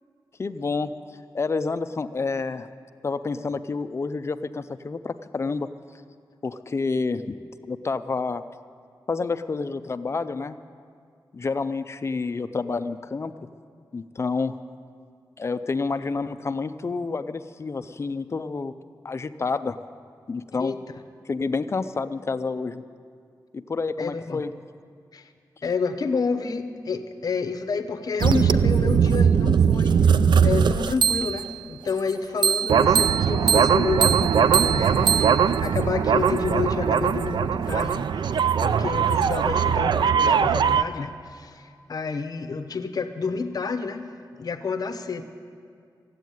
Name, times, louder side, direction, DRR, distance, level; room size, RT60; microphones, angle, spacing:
voice 1, 0.4-0.9 1.3-2.7 3.0-5.7 6.4-7.4 7.7-8.4 9.1-10.6 11.3-13.3 13.9-14.6 15.4-18.7 19.0-19.8 20.3-20.8 21.3-22.8 23.5-24.5, left 4 dB, 35° left, 11 dB, 0.5 m, -29 dB
voice 2, 24.0-24.4 25.1-25.3 25.6-44.1 44.3-45.2, left 4 dB, 55° left, 9 dB, 0.8 m, -29 dB
sound 1, 28.2-31.5 32.4-40.8, right 7 dB, 85° right, 0.4 m, -20 dB
14.5 x 8.3 x 9.3 m, 2.2 s
wide cardioid pair, 160°, 8 cm